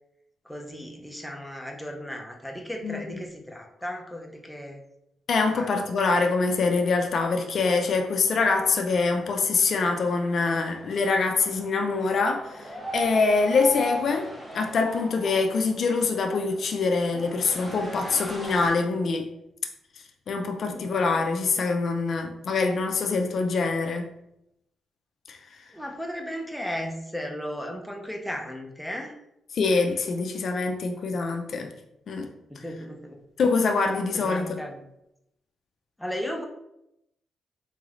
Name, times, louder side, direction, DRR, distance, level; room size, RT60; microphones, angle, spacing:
voice 1, 0.4-4.8 5.5-5.9 20.7-20.9 25.7-29.2 32.5-33.2 34.1-34.8 36.0-36.4, equal, ahead, 1 dB, 0.5 m, -35 dB
voice 2, 2.8-3.2 5.3-19.3 19.9-24.1 25.3-25.7 29.5-31.7 32.1-32.6 33.4-34.6, left 4 dB, 60° left, 4 dB, 0.4 m, -25 dB
sound 1, 6.1-18.7, right 1 dB, 25° right, 1.0 m, -41 dB
3.9 x 3.1 x 2.4 m, 0.83 s
cardioid pair, 90°, 0 cm